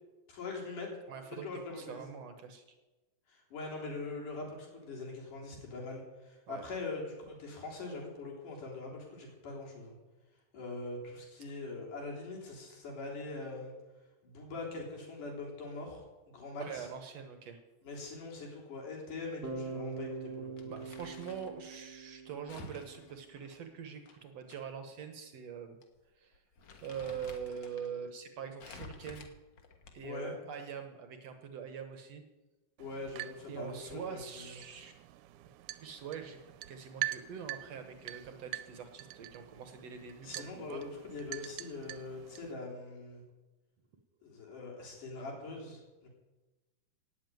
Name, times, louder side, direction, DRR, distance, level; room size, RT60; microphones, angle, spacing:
voice 1, 0.3-0.9 1.4-2.0 3.3-10.0 10.5-13.7 14.2-16.9 17.8-20.8 30.0-30.3 32.8-34.5 40.2-43.2 44.2-46.1, left 3 dB, 75° left, -1 dB, 5.0 m, -42 dB
voice 2, 1.1-1.5 1.8-2.8 6.5-6.7 16.6-17.6 20.7-25.8 26.2-26.4 26.8-29.3 29.9-32.2 33.5-34.9 35.8-36.4 36.7-40.8, right 7 dB, 65° right, 7 dB, 2.0 m, -44 dB
Bass guitar, 19.4-23.4, right 4 dB, 25° right, 3.3 m, -43 dB
Crumpling crinkling, 20.6-21.6 22.5-24.6 24.9-25.0 25.8-26.0 26.3-27.9 28.6-30.2, left 4 dB, 50° left, 1.5 m, -52 dB
sound 1, 32.8-42.5, right 17 dB, 80° right, 2.1 m, -45 dB
17.0 x 7.8 x 9.2 m, 1.2 s
omnidirectional pair, 3.7 m